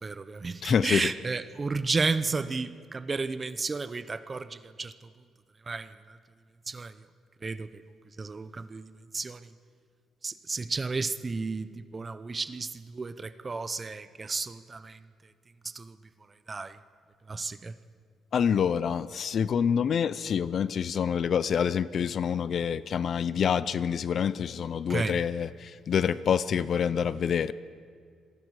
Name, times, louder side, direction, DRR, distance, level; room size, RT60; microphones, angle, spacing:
voice 1, 0.0-4.9 5.7-5.9 6.7-6.9 7.4-7.7 8.2-9.4 10.2-15.0 15.7-15.9 16.5-16.8 17.3-17.7 24.9-25.2, right 4 dB, 20° right, 14 dB, 0.6 m, -32 dB
voice 2, 0.6-1.1 18.3-27.5, left 7 dB, 45° left, 16 dB, 0.5 m, -27 dB
27.5 x 22.0 x 4.8 m, 2.1 s
cardioid pair, 160°, 0 cm